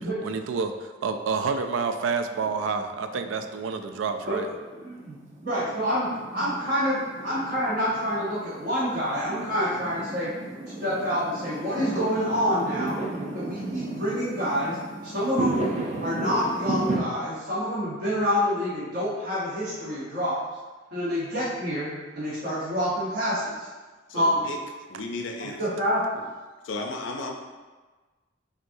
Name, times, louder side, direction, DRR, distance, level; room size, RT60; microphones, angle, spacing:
voice 1, 0.2-4.5 24.9-25.0, right 5 dB, 90° right, 8 dB, 0.4 m, -29 dB
Fireworks, 2.4-17.0, right 2 dB, 40° right, 0.5 m, -34 dB
voice 2, 4.7-10.3 10.8-13.0 13.3-14.8 15.0-15.6 16.0-20.4 20.9-21.9 22.1-23.7 24.1-24.4 25.4-26.3, equal, 55° right, -9 dB, 1.0 m, -27 dB
voice 3, 24.1-24.6 24.9-25.6 26.6-27.3, left 3 dB, 85° left, 2 dB, 0.5 m, -34 dB
6.0 x 2.7 x 2.6 m, 1.3 s
head